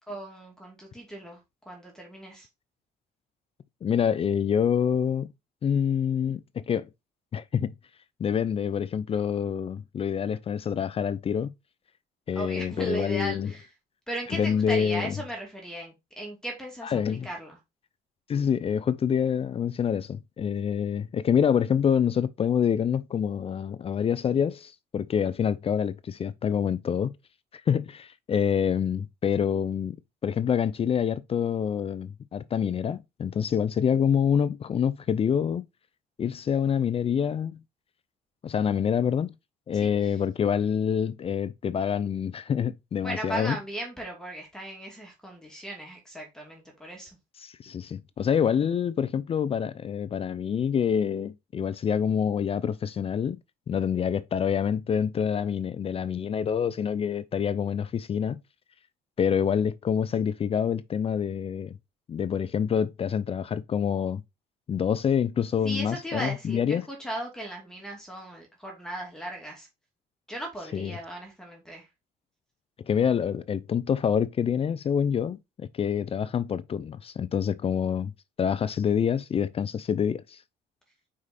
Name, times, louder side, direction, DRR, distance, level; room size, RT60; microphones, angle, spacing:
voice 1, 0.1-1.4 1.7-2.5 12.3-13.7 14.1-17.6 39.7-40.2 43.0-47.2 65.6-69.7 70.3-71.9, right 1 dB, 5° left, 2.5 m, -37 dB
voice 2, 3.8-5.3 5.6-6.9 7.3-7.7 8.2-11.5 12.3-13.5 14.3-15.1 16.8-17.3 18.3-27.1 27.7-30.0 30.2-35.6 36.2-37.6 38.4-39.3 39.7-43.6 47.4-53.4 53.7-58.4 59.2-61.7 62.1-64.2 64.7-66.9 70.7-70.9 72.9-78.1 78.4-80.4, left 7 dB, 35° left, 0.5 m, -26 dB
4.9 x 4.9 x 4.1 m
cardioid pair, 110°, 17 cm